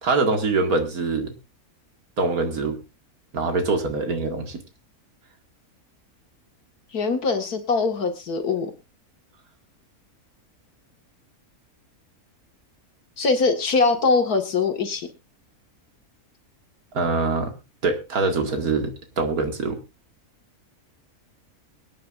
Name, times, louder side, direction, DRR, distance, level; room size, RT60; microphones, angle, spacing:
voice 1, 0.0-1.4 2.2-2.8 3.3-4.6 16.9-19.8, right 3 dB, 75° right, 5 dB, 2.5 m, -24 dB
voice 2, 6.9-8.7 13.2-15.1, left 4 dB, 90° left, 6 dB, 2.3 m, -22 dB
23.5 x 9.6 x 2.6 m, 0.26 s
omnidirectional pair, 1.6 m